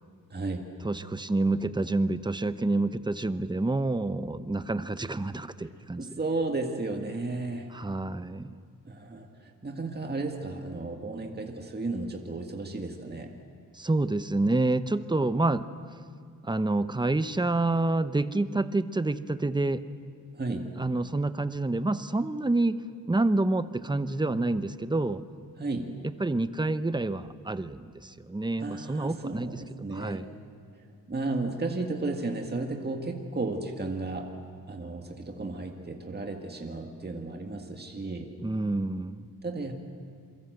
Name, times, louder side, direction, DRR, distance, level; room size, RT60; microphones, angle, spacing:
voice 1, 0.3-0.7 6.0-7.7 8.9-13.3 20.3-20.7 25.6-25.9 28.6-30.2 31.1-34.3 34.7-38.3 39.4-39.7, right 3 dB, 30° right, 2 dB, 1.9 m, -34 dB
voice 2, 0.8-6.0 7.7-8.6 13.7-15.7 16.4-19.8 20.8-22.8 23.1-25.2 26.0-29.6 29.9-30.3 38.4-39.2, right 2 dB, 15° right, 12 dB, 0.9 m, -28 dB
28.0 x 22.5 x 8.0 m, 2.1 s
wide cardioid pair, 100°, 35 cm